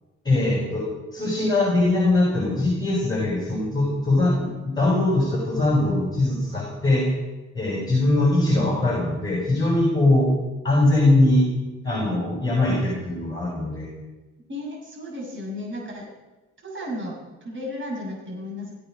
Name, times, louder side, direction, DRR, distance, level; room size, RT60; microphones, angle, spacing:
voice 1, 0.2-0.8 1.1-7.1 7.5-10.3 10.6-11.5 11.8-13.9, left 2 dB, 15° left, -3 dB, 6.0 m, -21 dB
voice 2, 14.5-16.1 16.6-18.7, left 1 dB, 40° right, -2 dB, 6.1 m, -34 dB
17.5 x 15.5 x 5.3 m, 1.2 s
cardioid pair, 90°, 30 cm